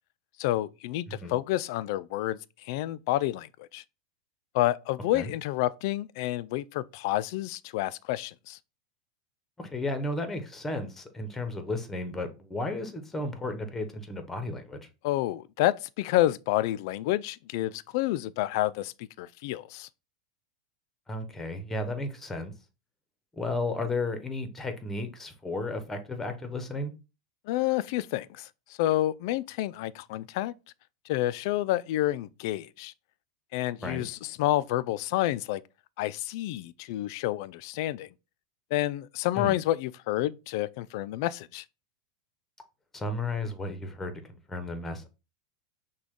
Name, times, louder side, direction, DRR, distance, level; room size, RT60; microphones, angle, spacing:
voice 1, 0.4-3.8 4.5-8.6 15.0-19.9 27.5-28.5 28.8-30.5 31.1-32.9 33.5-35.6 36.0-38.1 38.7-41.6, left 15 dB, 65° left, 0.3 m, -29 dB
voice 2, 9.6-14.9 21.1-22.5 23.3-26.9 33.8-34.0 39.3-39.6 42.9-44.2 44.5-45.1, left 2 dB, 10° left, 0.9 m, -33 dB
6.0 x 2.3 x 3.6 m
supercardioid pair, 130°, 2 cm